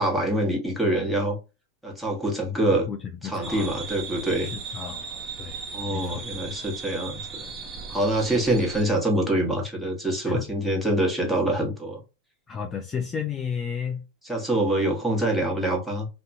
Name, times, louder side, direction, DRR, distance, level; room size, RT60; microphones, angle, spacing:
voice 1, 0.0-1.4 1.8-2.9 3.2-4.5 5.7-7.5 7.9-12.0 14.2-16.1, right 1 dB, ahead, 1.0 m, -25 dB
voice 2, 2.7-3.7 4.4-5.6 5.9-6.2 8.3-8.6 10.2-10.4 12.5-14.1, left 7 dB, 20° left, 0.4 m, -33 dB
sound 1, 3.4-8.8, right 5 dB, 30° right, 0.8 m, -37 dB
2.8 x 2.2 x 2.5 m
supercardioid pair, 125°, 0 cm